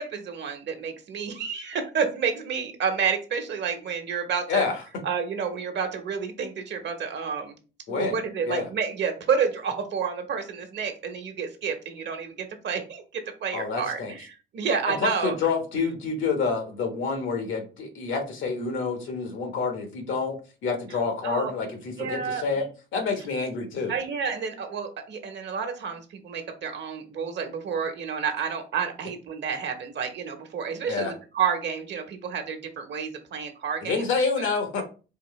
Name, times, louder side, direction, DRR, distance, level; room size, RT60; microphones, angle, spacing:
voice 1, 0.0-4.6 5.0-7.5 7.9-15.4 21.2-21.5 22.0-22.4 23.9-34.1, right 6 dB, 65° right, 6 dB, 1.0 m, -30 dB
voice 2, 13.5-14.1 14.9-20.4 20.6-23.9 30.9-31.1 33.8-34.8, left 4 dB, 80° left, 4 dB, 1.3 m, -28 dB
4.5 x 2.7 x 3.1 m, 0.34 s
cardioid pair, 90°, 20 cm